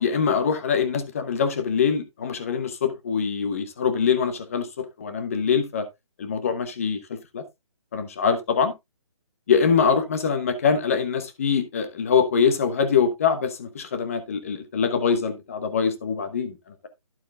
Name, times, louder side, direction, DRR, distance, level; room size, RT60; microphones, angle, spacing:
voice 1, 0.0-5.9 6.2-7.4 7.9-8.7 9.5-16.6, left 6 dB, 25° left, 1.0 m, -24 dB
11.5 x 7.4 x 2.4 m
hypercardioid pair, 170°, 17 cm